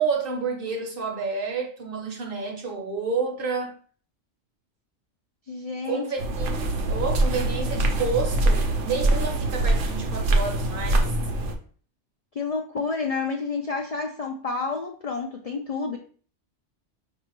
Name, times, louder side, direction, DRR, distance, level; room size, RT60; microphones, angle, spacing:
voice 1, 0.0-3.7 5.8-6.6 6.9-11.0, right 5 dB, 50° right, 0.9 m, -29 dB
voice 2, 5.5-6.0 12.3-16.0, left 4 dB, 65° left, 0.3 m, -29 dB
sound 1, 6.2-11.6, right 2 dB, 80° right, 1.0 m, -24 dB
5.0 x 2.7 x 3.0 m
omnidirectional pair, 1.2 m